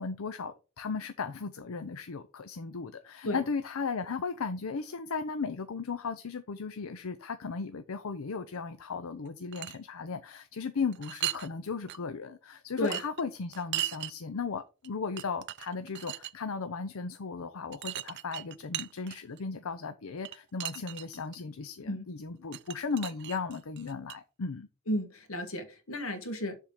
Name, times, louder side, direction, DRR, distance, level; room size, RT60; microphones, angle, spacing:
voice 1, 0.0-24.7, left 5 dB, 90° left, 0.6 m, -36 dB
sound 1, 9.3-9.8 10.9-11.5 11.9-12.0 12.8-14.1 14.8-14.9 15.2-16.3 17.7-19.4 20.2-21.4 22.5-24.2, right 13 dB, 55° right, 0.4 m, -37 dB
voice 2, 24.9-26.5, left 1 dB, 75° left, 1.9 m, -33 dB
7.3 x 3.7 x 6.4 m
head